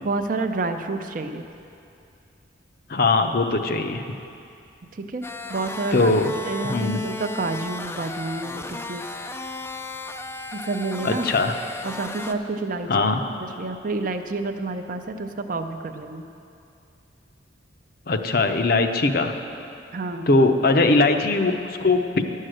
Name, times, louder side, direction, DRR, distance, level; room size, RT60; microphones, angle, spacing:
voice 1, 0.0-1.4 5.0-5.2 5.5-6.1 6.5-9.0 10.5-11.3 11.8-13.0 13.4-16.2 19.9-20.5, right 3 dB, 45° right, 7 dB, 0.5 m, -29 dB
voice 2, 2.9-4.0 5.9-6.3 6.6-7.0 11.0-11.5 12.9-13.2 18.1-19.3 20.3-22.2, left 3 dB, 50° left, 6 dB, 0.6 m, -20 dB
sound 1, 5.2-12.3, left 2 dB, 15° left, 0.3 m, -35 dB
10.5 x 6.5 x 7.6 m, 2.6 s
head